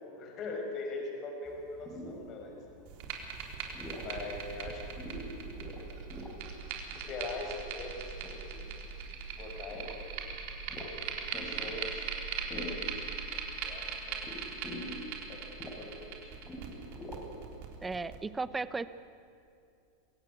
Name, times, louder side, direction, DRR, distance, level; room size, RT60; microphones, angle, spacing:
voice 1, 0.0-2.5 4.0-5.3 5.9-6.0 6.9-8.9 9.4-10.0 11.3-12.0 12.5-12.9 13.2-14.6 15.3-15.4 15.8-16.3, left 3 dB, 40° left, 2 dB, 5.4 m, -42 dB
sound 1, 1.5-17.6, left 1 dB, 15° left, 5.8 m, -47 dB
sound 2, 2.9-18.2, right 6 dB, 60° right, 3.7 m, -40 dB
voice 2, 17.8-18.9, right 4 dB, 15° right, 15 dB, 1.0 m, -35 dB
26.0 x 15.5 x 9.5 m, 2.6 s
hypercardioid pair, 100°, 0 cm